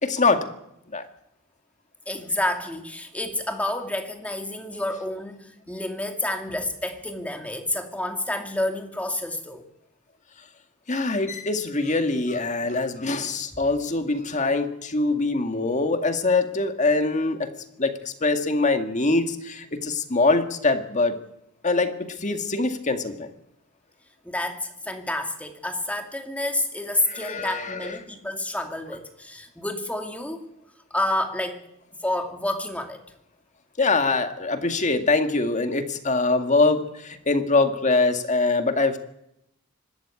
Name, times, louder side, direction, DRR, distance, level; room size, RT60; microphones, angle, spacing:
voice 1, 0.0-0.5 0.9-1.1 10.9-17.5 17.8-17.9 18.2-21.2 21.6-23.3 27.1-28.0 33.8-39.0, left 3 dB, 35° left, 7 dB, 1.9 m, -23 dB
voice 2, 2.1-9.6 24.2-30.5 30.9-31.6 32.0-33.0, left 1 dB, 5° left, 5 dB, 2.4 m, -29 dB
24.5 x 13.5 x 8.8 m, 0.78 s
head